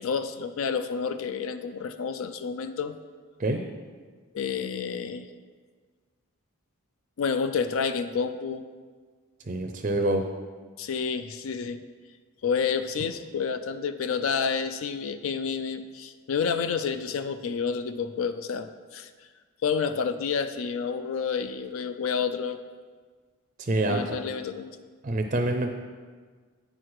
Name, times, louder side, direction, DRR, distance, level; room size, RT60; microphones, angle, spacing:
voice 1, 0.0-2.9 4.3-5.3 7.2-8.7 10.8-11.8 12.4-19.1 19.6-22.6 23.9-24.8, left 6 dB, 65° left, 10 dB, 0.4 m, -29 dB
voice 2, 9.5-10.3 23.6-24.2 25.0-25.7, right 2 dB, 35° right, 4 dB, 0.4 m, -26 dB
8.9 x 6.1 x 4.7 m, 1.5 s
head